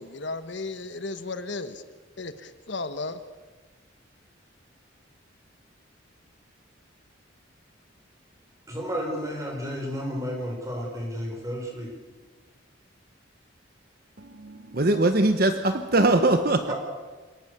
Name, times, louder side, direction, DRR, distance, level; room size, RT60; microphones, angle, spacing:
voice 1, 0.0-1.8 2.2-3.2, left 3 dB, 65° left, 10 dB, 1.3 m, -34 dB
voice 2, 8.7-11.9 16.7-16.8, equal, 15° right, 0 dB, 5.8 m, -32 dB
voice 3, 14.2-16.7, right 2 dB, 50° right, 8 dB, 1.1 m, -22 dB
27.5 x 18.5 x 6.8 m, 1.4 s
head